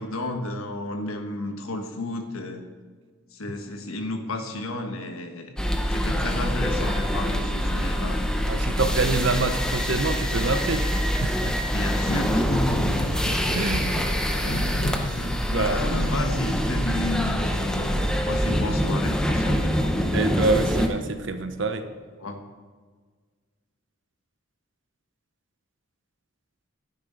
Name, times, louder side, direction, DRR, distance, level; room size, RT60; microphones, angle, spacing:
voice 1, 0.0-2.6 3.3-5.6 5.9-8.2 11.6-13.2 15.5-19.9 22.2-22.4, left 2 dB, 85° left, 5 dB, 1.3 m, -32 dB
sound 1, 5.6-20.9, equal, 5° left, 0.7 m, -25 dB
voice 2, 8.5-10.9 11.2-11.6 13.5-13.9 15.0-15.8 20.1-21.8, right 3 dB, 60° right, 9 dB, 0.8 m, -26 dB
sound 2, 12.1-17.7, left 1 dB, 55° left, 1.0 m, -33 dB
11.0 x 9.7 x 3.9 m, 1.5 s
head